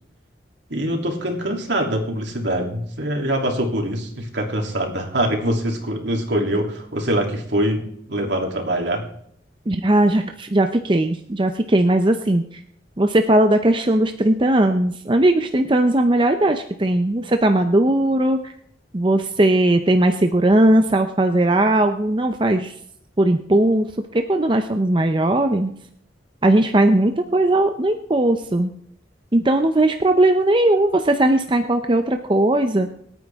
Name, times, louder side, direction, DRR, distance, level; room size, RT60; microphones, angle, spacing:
voice 1, 0.7-9.0, right 1 dB, 70° right, 2 dB, 3.0 m, -24 dB
voice 2, 9.7-12.4 13.0-18.5 18.9-22.7 23.2-25.7 26.4-28.7 29.3-32.9, right 1 dB, 25° right, 6 dB, 0.6 m, -18 dB
26.5 x 9.2 x 3.6 m, 0.69 s
head